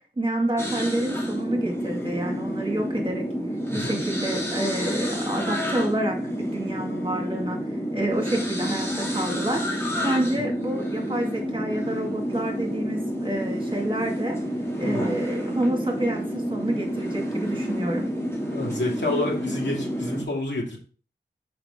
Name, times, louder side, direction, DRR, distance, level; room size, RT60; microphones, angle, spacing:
voice 1, 0.2-3.3 3.7-7.6 7.9-9.6 10.0-14.4 14.8-18.1, right 1 dB, 30° right, 1 dB, 2.1 m, -28 dB
sound 1, 0.6-20.2, equal, 15° left, 2.5 m, -29 dB
voice 2, 3.7-4.0 14.8-15.1 18.5-20.8, left 2 dB, 80° left, -1 dB, 2.4 m, -29 dB
6.9 x 5.3 x 3.7 m, 0.39 s
wide cardioid pair, 80°, 18 cm